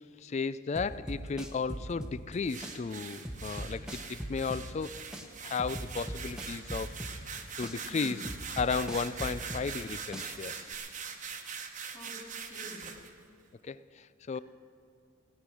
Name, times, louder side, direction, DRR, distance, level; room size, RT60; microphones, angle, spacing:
voice 1, 0.0-7.3 7.6-8.2 8.6-10.7 13.6-14.4, left 5 dB, 35° left, 17 dB, 0.3 m, -35 dB
sound 1, 0.8-2.4 2.6-4.9 5.1-7.4 7.6-9.9 10.1-10.8, equal, 5° right, 1.1 m, -40 dB
sound 2, 2.5-13.1, right 6 dB, 35° right, 1.1 m, -42 dB
voice 2, 11.9-12.2 12.5-12.9 14.3-14.4, equal, 20° left, -2 dB, 3.1 m, -47 dB
17.5 x 9.9 x 6.2 m, 2.4 s
head